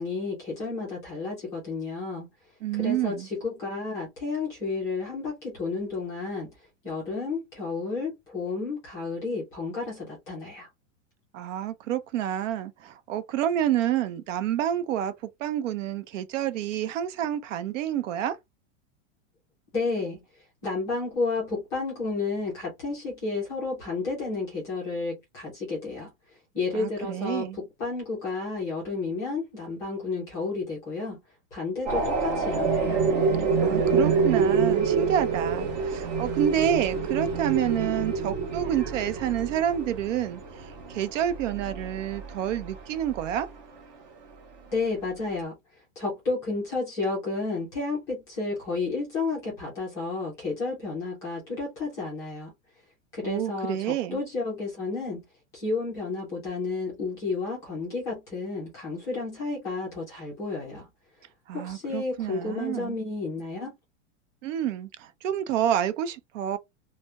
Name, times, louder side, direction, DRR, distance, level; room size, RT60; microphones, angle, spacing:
voice 1, 0.0-2.3 2.7-6.5 6.8-10.7 19.7-20.2 20.6-26.1 26.5-31.2 31.5-33.0 44.7-45.5 46.0-52.5 53.1-55.2 55.5-60.9 61.5-63.7, left 3 dB, 10° left, 0.3 m, -31 dB
voice 2, 2.6-3.3 11.3-15.1 15.4-18.4 26.7-27.6 33.6-43.5 53.2-54.2 61.5-63.0 64.4-66.6, right 10 dB, 90° right, 0.6 m, -28 dB
sound 1, 31.9-43.5, right 5 dB, 35° right, 0.6 m, -27 dB
2.2 x 2.1 x 2.8 m
supercardioid pair, 175°, 37 cm